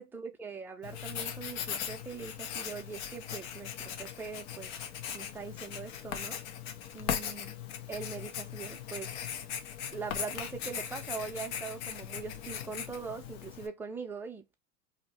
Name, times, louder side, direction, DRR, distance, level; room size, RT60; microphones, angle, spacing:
voice 1, 0.0-4.7 5.1-6.4 6.9-7.6 7.9-9.1 9.9-14.6, right 5 dB, 5° right, 0.4 m, -42 dB
Writing, 0.8-13.7, left 8 dB, 55° left, 0.8 m, -39 dB
2.7 x 2.1 x 4.1 m
hypercardioid pair, 110°, 43 cm